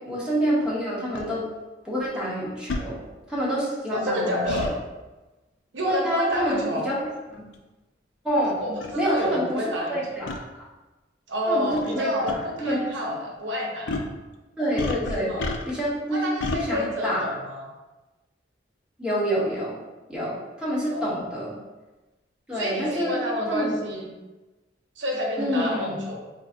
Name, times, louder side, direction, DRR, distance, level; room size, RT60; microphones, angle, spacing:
voice 1, 0.0-1.5 1.8-3.0 3.3-4.7 5.8-7.5 8.2-8.6 9.0-10.7 11.5-13.1 14.6-15.3 15.7-16.2 16.5-17.3 19.0-19.8 20.1-21.6 22.5-23.2 23.5-23.6 25.4-26.0, equal, 5° right, -7 dB, 0.9 m, -27 dB
sound 1, 1.1-1.3 2.7-2.9 4.5-4.7 6.5-6.7 7.5-7.6 8.4-8.5 8.8-8.9 10.3-10.4 11.7-12.0 12.3-12.4 13.9-14.1 14.8-15.9 16.4-16.6, left 2 dB, 75° left, 0.4 m, -30 dB
voice 2, 3.9-4.7 5.7-6.8 8.6-10.3 11.3-14.1 15.1-15.5 16.1-17.7 20.9-21.2 22.5-24.1 25.0-26.2, equal, 75° right, -1 dB, 0.7 m, -29 dB
4.6 x 2.6 x 2.4 m, 1.1 s
head